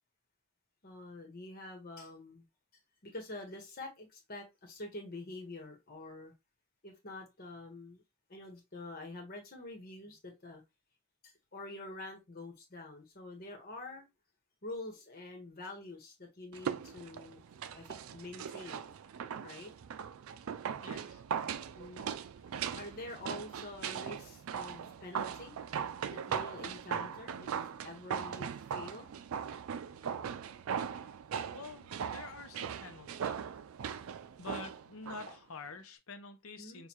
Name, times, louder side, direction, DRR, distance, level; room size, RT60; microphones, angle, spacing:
voice 1, 0.8-2.4 3.0-6.3 6.8-8.0 8.3-10.6 11.2-14.0 14.6-17.4 17.7-18.9 19.4-19.7 21.8-25.6 26.1-27.5 27.8-29.1 36.6-36.8, left 2 dB, 45° left, 1.3 m, -47 dB
sound 1, 16.5-35.3 35.6-35.7, right 7 dB, 75° right, 0.4 m, -39 dB
voice 2, 20.8-21.2 31.5-33.4 34.4-36.9, left 4 dB, 85° left, 0.8 m, -47 dB
6.4 x 2.5 x 2.9 m
head